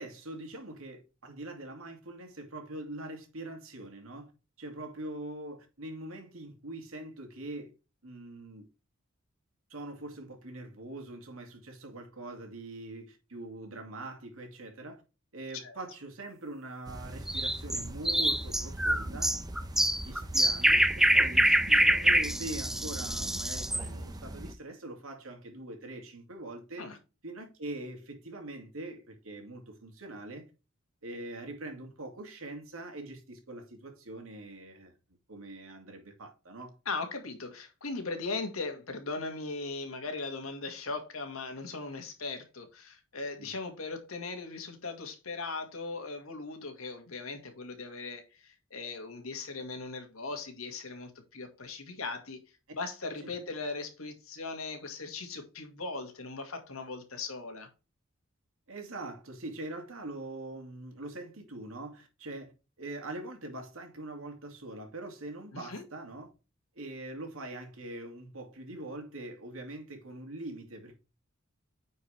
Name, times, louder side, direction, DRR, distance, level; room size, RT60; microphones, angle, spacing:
voice 1, 0.0-4.3 4.6-7.7 8.0-8.6 9.7-15.0 15.3-19.3 20.0-26.9 27.2-30.5 31.0-34.9 35.3-36.8 43.4-43.5 53.2-53.3 58.7-62.5 62.8-66.3 66.7-70.9, right 2 dB, 80° right, 2.4 m, -43 dB
sound 1, 16.9-24.5, right 1 dB, 20° right, 0.8 m, -41 dB
sound 2, 17.3-23.8, right 1 dB, ahead, 0.4 m, -25 dB
voice 2, 36.9-52.4 52.7-57.7 65.5-65.8, left 3 dB, 85° left, 2.0 m, -39 dB
9.1 x 4.8 x 3.4 m
head